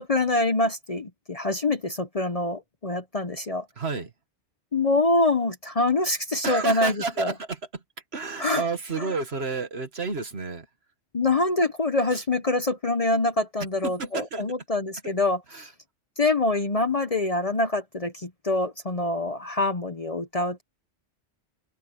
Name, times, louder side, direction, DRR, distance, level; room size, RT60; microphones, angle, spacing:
voice 1, 0.0-3.7 4.7-7.3 8.4-8.6 9.0-9.1 11.1-15.7 16.2-20.6, left 2 dB, 35° left, 0.9 m, -25 dB
voice 2, 3.8-4.1 6.4-7.6 8.1-10.7 12.1-12.2 13.8-14.4 15.5-15.7, right 4 dB, 60° right, 2.0 m, -30 dB
open air
omnidirectional pair, 1.2 m